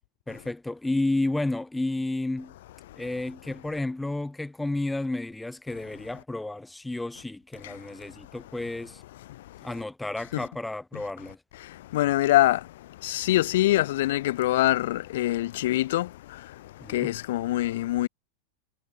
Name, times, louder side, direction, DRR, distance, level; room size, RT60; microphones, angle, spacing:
voice 1, 0.3-2.5 3.0-9.0 9.6-11.4 16.8-17.2, left 2 dB, 5° left, 2.3 m, -31 dB
voice 2, 9.3-9.7 10.3-10.4 11.5-18.1, left 15 dB, 55° left, 1.6 m, -25 dB
figure-of-eight pair, 90°, 0 cm